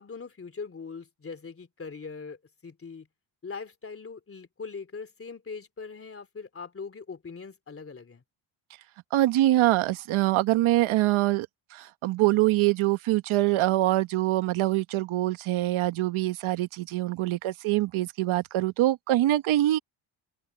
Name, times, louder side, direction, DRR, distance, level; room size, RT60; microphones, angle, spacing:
voice 1, 0.0-2.4 2.6-3.1 3.4-8.2, left 5 dB, 25° left, 3.1 m, -41 dB
voice 2, 9.1-11.5 11.7-19.8, right 15 dB, 75° right, 1.2 m, -24 dB
open air
cardioid pair, 100°, 49 cm